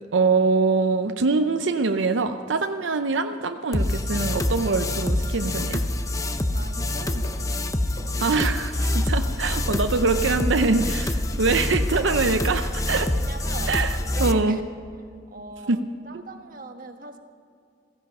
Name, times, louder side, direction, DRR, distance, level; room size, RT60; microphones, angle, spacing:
voice 1, 0.1-5.8 8.2-11.1 11.4-13.1 13.7-14.6 15.7-15.8 16.1-16.2, right 3 dB, 85° right, 7 dB, 0.7 m, -23 dB
sound 1, 3.7-14.3, left 1 dB, 20° left, 0.6 m, -26 dB
sound 2, 4.8-5.1 5.6-5.9 6.4-6.7 7.1-8.2 8.6-9.7 10.2-10.5, equal, 35° left, 2.8 m, -46 dB
voice 2, 6.5-7.3 9.7-9.9 10.4-10.9 11.3-11.4 12.6-12.7 13.1-14.6 15.3-17.2, right 2 dB, 50° right, 5 dB, 1.3 m, -41 dB
16.0 x 15.5 x 5.5 m, 2.4 s
head